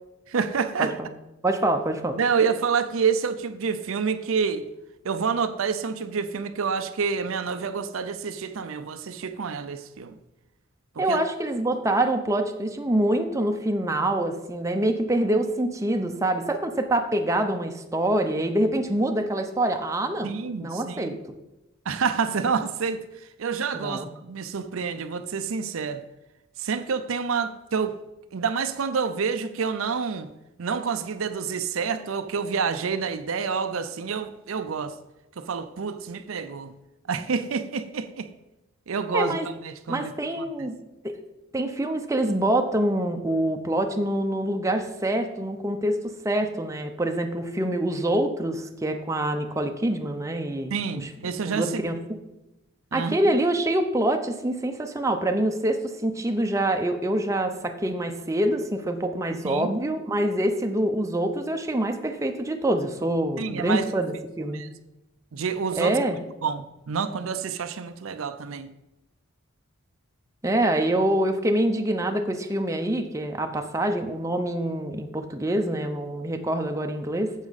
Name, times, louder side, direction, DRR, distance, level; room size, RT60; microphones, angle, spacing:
voice 1, 0.3-1.0 2.2-4.7 5.0-10.1 11.0-11.2 20.2-21.2 21.9-23.0 23.4-26.0 26.6-28.0 28.3-30.3 30.6-35.0 35.4-36.7 37.1-38.3 38.9-40.1 40.4-40.7 50.7-51.8 52.9-53.2 59.4-59.7 63.4-63.8 64.5-64.7 65.3-66.0 66.4-68.7, right 5 dB, 70° right, 0.5 m, -28 dB
voice 2, 1.4-2.2 11.0-20.3 20.6-21.2 23.7-24.1 39.1-39.5 39.9-40.7 41.0-41.1 41.5-51.1 51.5-52.0 52.9-64.6 65.8-66.2 70.4-77.3, right 1 dB, 15° right, 0.6 m, -25 dB
9.7 x 7.2 x 4.1 m
head